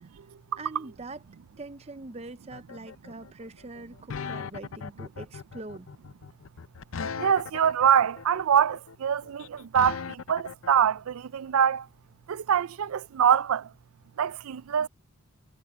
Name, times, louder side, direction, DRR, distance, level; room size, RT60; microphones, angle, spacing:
voice 1, 0.6-1.2 1.6-5.9, right 2 dB, 30° right, 0.6 m, -43 dB
sound 1, 2.5-10.7, left 6 dB, 65° left, 0.6 m, -38 dB
voice 2, 7.2-11.8 12.3-13.6 14.2-14.9, right 8 dB, 75° right, 0.4 m, -24 dB
head